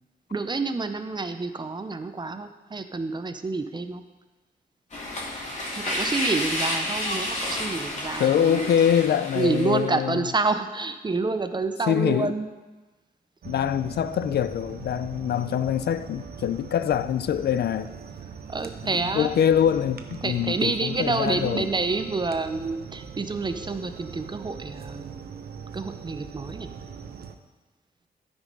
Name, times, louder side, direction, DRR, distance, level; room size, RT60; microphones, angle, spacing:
voice 1, 0.3-4.0 5.8-8.8 9.4-12.5 18.5-19.3 20.2-25.3 25.7-26.7, right 3 dB, 25° right, 9 dB, 0.6 m, -28 dB
sound 1, 4.9-9.8, left 1 dB, 45° left, 2.9 m, -30 dB
voice 2, 8.2-10.3 11.9-12.3 13.4-18.0 18.8-21.7, left 9 dB, 80° left, 14 dB, 0.4 m, -24 dB
sound 2, 13.4-27.3, right 6 dB, 70° right, 0.7 m, -41 dB
13.0 x 5.3 x 5.3 m, 1.2 s
wide cardioid pair, 130°, 17 cm